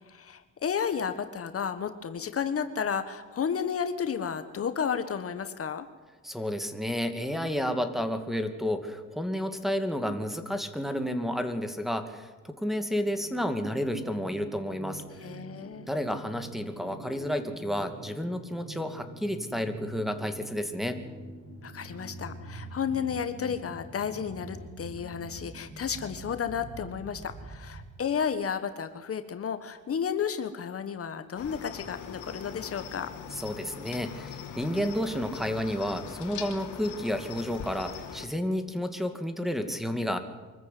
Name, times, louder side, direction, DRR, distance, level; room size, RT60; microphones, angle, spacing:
voice 1, 0.1-5.9 15.2-15.9 21.6-33.1, left 7 dB, 50° left, 10 dB, 1.4 m, -32 dB
voice 2, 6.2-15.0 15.9-21.0 33.3-40.2, equal, ahead, 5 dB, 2.4 m, -31 dB
sound 1, 13.0-28.0, right 1 dB, 45° right, 5.8 m, -45 dB
Cricket, 31.4-38.3, left 7 dB, 75° left, 3.0 m, -41 dB
24.5 x 14.0 x 9.4 m, 1.4 s
cardioid pair, 90°, 30 cm